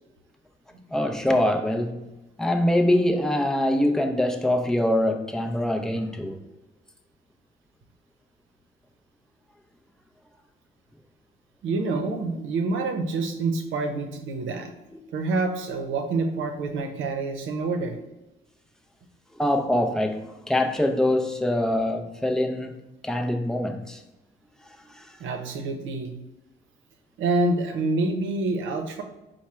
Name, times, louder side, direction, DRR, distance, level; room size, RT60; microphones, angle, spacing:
voice 1, 0.9-2.1 2.4-6.4 19.3-20.2 20.5-22.8 23.0-24.0 24.8-25.2, left 1 dB, 5° left, 0.6 m, -24 dB
voice 2, 11.6-14.7 15.1-18.0 25.2-26.1 27.2-29.0, right 3 dB, 75° right, 0.7 m, -27 dB
4.7 x 2.2 x 4.3 m
cardioid pair, 90°, 20 cm